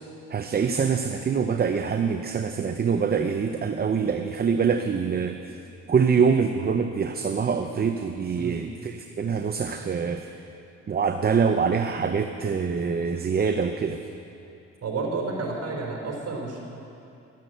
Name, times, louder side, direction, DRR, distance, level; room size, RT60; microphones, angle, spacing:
voice 1, 0.3-5.6 5.9-10.2 10.9-14.0, right 6 dB, 30° right, 6 dB, 0.7 m, -25 dB
voice 2, 14.8-16.6, right 3 dB, 50° right, -1 dB, 3.8 m, -30 dB
12.0 x 10.5 x 8.0 m, 2.7 s
cardioid pair, 90°, 30 cm